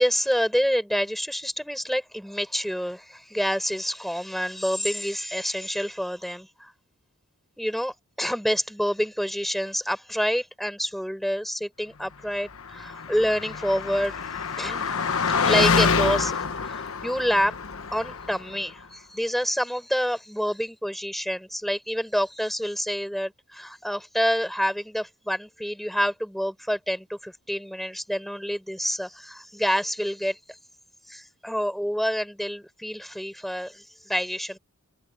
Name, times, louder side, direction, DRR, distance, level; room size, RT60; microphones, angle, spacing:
voice 1, 0.0-6.7 7.6-14.3 14.6-17.6 17.9-30.4 31.1-34.6, equal, ahead, 7.1 m, -27 dB
Car passing by, 12.6-18.5, left 5 dB, 65° left, 1.2 m, -26 dB
head